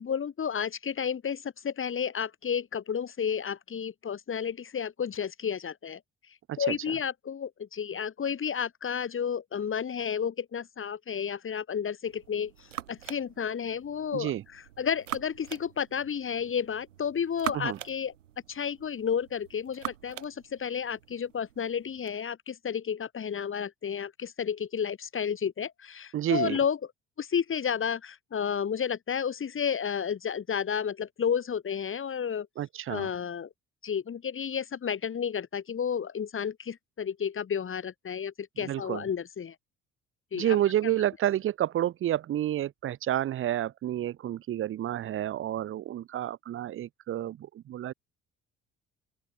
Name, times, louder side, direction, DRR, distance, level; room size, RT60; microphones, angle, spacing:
voice 1, 0.0-6.0 6.6-12.5 12.9-14.3 14.8-18.1 18.5-26.8 27.2-32.5 32.9-33.5 33.8-39.5 40.3-40.6, left 7 dB, 35° left, 2.0 m, -31 dB
sound 1, 12.1-22.2, right 11 dB, 80° right, 2.7 m, -43 dB
voice 2, 14.1-14.4 17.5-17.8 26.1-26.6 32.6-33.1 38.6-39.1 40.3-47.9, right 12 dB, 35° right, 0.6 m, -30 dB
open air
figure-of-eight pair, 50°, 37 cm